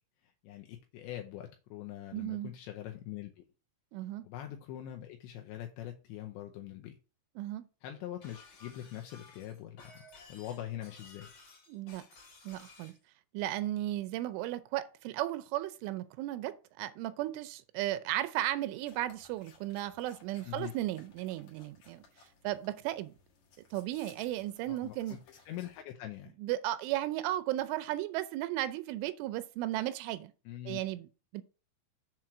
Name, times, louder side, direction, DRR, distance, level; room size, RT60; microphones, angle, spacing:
voice 1, 0.2-3.5 4.2-7.0 7.8-10.0 10.3-11.3 20.4-20.7 24.7-25.2 25.5-26.3 30.5-30.8, left 12 dB, 80° left, 2.8 m, -43 dB
voice 2, 2.1-2.5 3.9-4.3 7.4-7.7 11.7-12.0 12.4-12.9 13.3-22.0 22.4-23.1 23.7-25.2 26.4-30.3 30.7-31.4, right 14 dB, 90° right, 3.2 m, -35 dB
Shatter, 8.2-13.0, left 3 dB, 35° left, 3.9 m, -56 dB
sound 1, 18.9-25.8, left 5 dB, 60° left, 2.0 m, -62 dB
7.6 x 4.3 x 5.9 m
omnidirectional pair, 5.4 m